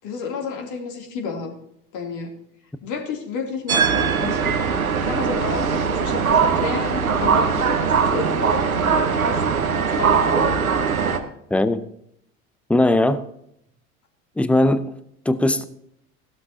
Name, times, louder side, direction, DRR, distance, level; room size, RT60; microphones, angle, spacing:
voice 1, 0.0-1.5 1.9-2.3 2.8-4.7 5.0-9.6 9.9-10.6, left 5 dB, 45° left, 2.9 m, -31 dB
sound 1, 3.7-11.2, right 6 dB, 85° right, 1.1 m, -20 dB
voice 2, 11.5-11.9 12.7-13.3 14.4-14.9 15.3-15.6, left 1 dB, 5° left, 0.6 m, -19 dB
16.5 x 12.0 x 2.8 m
figure-of-eight pair, 75°, 41 cm